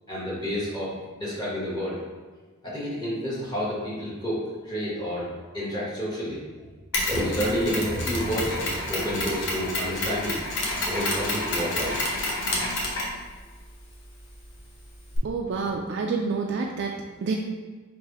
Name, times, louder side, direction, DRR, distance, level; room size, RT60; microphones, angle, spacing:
voice 1, 0.1-2.0 2.6-5.3 5.5-6.4 7.1-10.4 10.9-12.1, equal, 20° left, -7 dB, 1.0 m, -29 dB
Mechanisms, 6.9-15.2, left 1 dB, 55° left, 0.9 m, -30 dB
voice 2, 15.2-17.4, right 4 dB, 55° right, 0 dB, 0.3 m, -28 dB
3.4 x 2.6 x 4.5 m, 1.4 s
head